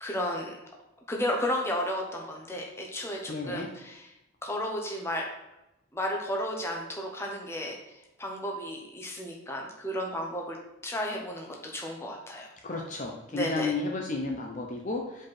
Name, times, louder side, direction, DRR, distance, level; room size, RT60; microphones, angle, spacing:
voice 1, 0.0-0.6 1.1-4.1 4.4-5.3 5.9-7.8 8.2-10.6 10.8-12.5 13.3-13.7, equal, 15° left, 0 dB, 0.9 m, -33 dB
voice 2, 3.3-3.7 12.6-15.3, left 3 dB, 40° left, 1 dB, 0.6 m, -32 dB
5.1 x 4.7 x 4.2 m, 0.94 s
head